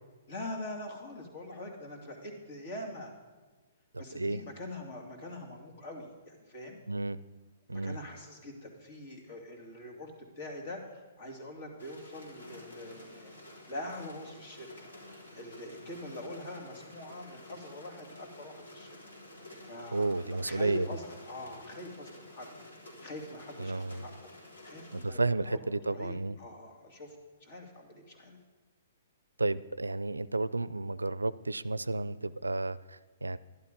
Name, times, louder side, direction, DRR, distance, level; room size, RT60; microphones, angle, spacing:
voice 1, 0.3-3.2 4.0-6.8 7.7-13.3 13.7-14.9 15.3-19.0 19.6-22.5 23.0-24.3 24.6-28.4, left 1 dB, 50° left, 2 dB, 2.8 m, -44 dB
voice 2, 3.9-4.4 6.9-7.2 7.7-8.0 19.9-20.9 23.6-24.0 24.9-26.4 29.4-33.4, right 2 dB, 85° right, 18 dB, 0.4 m, -32 dB
sound 1, 11.8-25.0, left 1 dB, 75° left, 3.7 m, -51 dB
11.5 x 11.5 x 5.3 m, 1.3 s
figure-of-eight pair, 120°, 0 cm